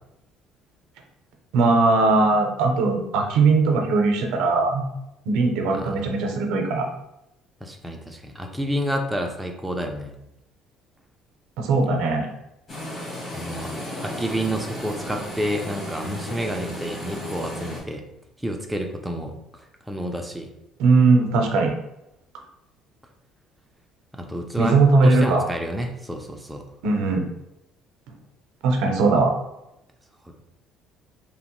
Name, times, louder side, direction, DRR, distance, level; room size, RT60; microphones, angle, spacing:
voice 1, 1.5-4.8 5.3-6.9 11.6-12.3 20.8-21.7 24.6-25.4 26.8-27.3 28.6-29.4, right 3 dB, 80° right, 3 dB, 0.5 m, -19 dB
voice 2, 5.7-6.1 7.6-10.2 13.3-13.7 14.0-18.0 18.4-20.5 24.1-26.6, equal, 5° right, 2 dB, 0.3 m, -29 dB
sound 1, 12.7-17.8, equal, 35° left, 1.0 m, -34 dB
2.9 x 2.1 x 2.9 m, 0.86 s
cardioid pair, 130°, 0 cm